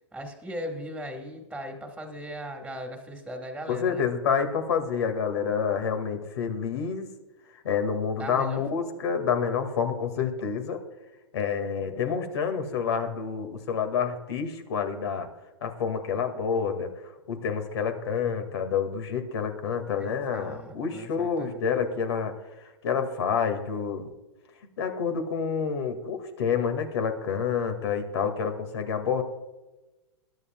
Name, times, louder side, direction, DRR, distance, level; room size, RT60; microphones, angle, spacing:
voice 1, 0.1-4.1 8.2-8.9 20.0-21.6, equal, ahead, 2 dB, 1.9 m, -38 dB
voice 2, 3.7-7.1 7.6-10.8 11.3-15.3 15.6-16.9 17.3-22.3 22.8-24.1 24.8-29.2, left 6 dB, 65° left, 7 dB, 2.2 m, -28 dB
22.0 x 11.0 x 2.4 m, 1.1 s
hypercardioid pair, 120°, 15 cm